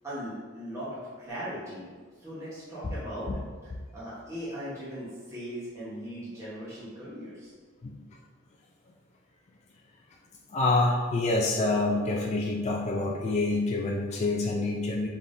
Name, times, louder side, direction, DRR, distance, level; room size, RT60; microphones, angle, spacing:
voice 1, 0.0-3.3 3.6-7.5, equal, 15° right, -10 dB, 1.0 m, -39 dB
voice 2, 10.5-15.1, left 2 dB, 35° left, -1 dB, 0.4 m, -27 dB
5.6 x 3.5 x 2.6 m, 1.5 s
head